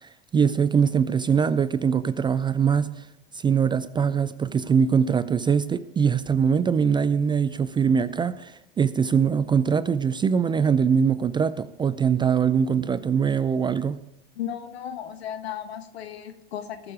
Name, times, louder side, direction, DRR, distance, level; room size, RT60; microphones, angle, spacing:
voice 1, 0.0-3.1 3.3-14.0, right 7 dB, 15° right, 0.4 m, -22 dB
voice 2, 14.3-16.9, left 10 dB, 75° left, 1.4 m, -35 dB
19.5 x 6.6 x 4.9 m
hypercardioid pair, 90°, 32 cm